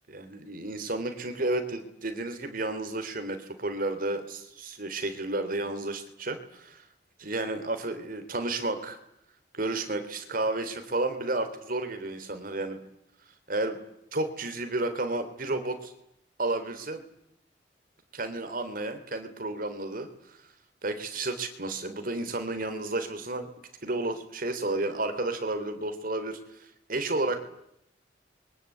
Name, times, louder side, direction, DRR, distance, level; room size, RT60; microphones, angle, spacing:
voice 1, 0.1-6.9 7.2-9.0 9.5-12.8 13.5-13.8 14.1-15.9 16.4-17.0 18.1-20.4 20.8-23.5 23.8-27.5, right 2 dB, 50° right, 8 dB, 3.4 m, -32 dB
28.0 x 23.5 x 8.5 m, 0.79 s
head